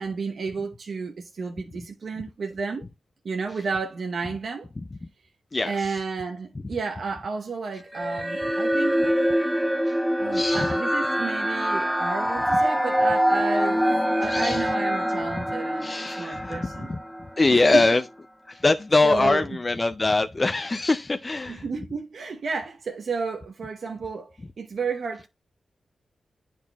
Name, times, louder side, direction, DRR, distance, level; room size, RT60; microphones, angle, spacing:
voice 1, 0.0-2.8 3.2-4.7 5.6-9.0 10.2-13.8 14.1-16.9 17.5-17.8 19.0-19.4 21.5-25.3, right 4 dB, 70° right, 0.9 m, -32 dB
voice 2, 5.5-6.0 9.9-10.0 10.3-10.8 14.2-14.7 15.3-15.4 15.8-17.0 17.4-18.0 18.5-21.6, left 2 dB, 35° left, 0.4 m, -23 dB
sound 1, 7.9-17.4, equal, 10° right, 0.9 m, -24 dB
9.6 x 4.2 x 2.3 m
cardioid pair, 55°, 0 cm